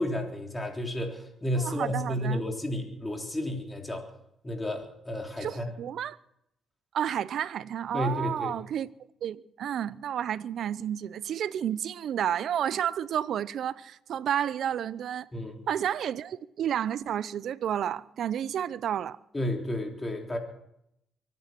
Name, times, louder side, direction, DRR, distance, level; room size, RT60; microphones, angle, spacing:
voice 1, 0.0-4.0 4.4-5.7 7.9-8.5 15.3-15.6 19.3-20.4, left 1 dB, 15° left, 3.7 m, -32 dB
voice 2, 1.6-2.4 5.4-6.2 6.9-8.9 9.2-15.3 15.7-19.2, right 9 dB, 70° right, 0.6 m, -31 dB
24.0 x 9.6 x 6.0 m
cardioid pair, 90°, 0 cm